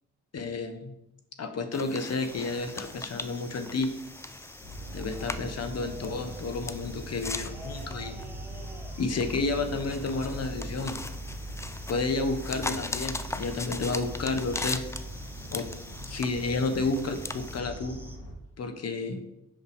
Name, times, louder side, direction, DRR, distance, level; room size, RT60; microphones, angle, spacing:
voice 1, 0.3-0.9 1.4-3.9 4.9-8.2 9.0-11.0 11.9-14.8 15.5-15.7 16.1-18.0 18.6-19.2, left 3 dB, 50° left, 8 dB, 0.9 m, -31 dB
sound 1, 1.7-17.6, left 2 dB, 10° left, 0.3 m, -40 dB
sound 2, 2.3-18.2, equal, 5° right, 0.9 m, -50 dB
sound 3, 4.6-18.3, right 1 dB, 80° left, 1.6 m, -41 dB
5.7 x 5.7 x 3.3 m, 0.82 s
cardioid pair, 65°, 33 cm